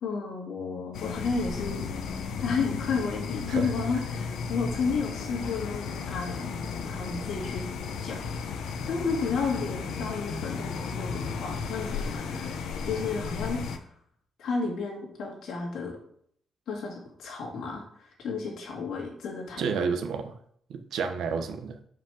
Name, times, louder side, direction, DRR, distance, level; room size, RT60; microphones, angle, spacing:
voice 1, 0.0-1.9 2.4-6.5 6.8-7.6 8.0-8.2 8.5-8.6 8.9-12.5 12.9-13.8 14.4-16.0 16.7-17.8 18.2-19.8, left 5 dB, 65° left, 0 dB, 2.3 m, -32 dB
sound 1, 0.9-13.8, left 5 dB, 85° left, 0.8 m, -34 dB
voice 2, 19.6-20.4 20.7-21.8, right 5 dB, 75° right, 6 dB, 1.0 m, -30 dB
5.9 x 5.2 x 6.4 m, 0.64 s
wide cardioid pair, 180°, 0 cm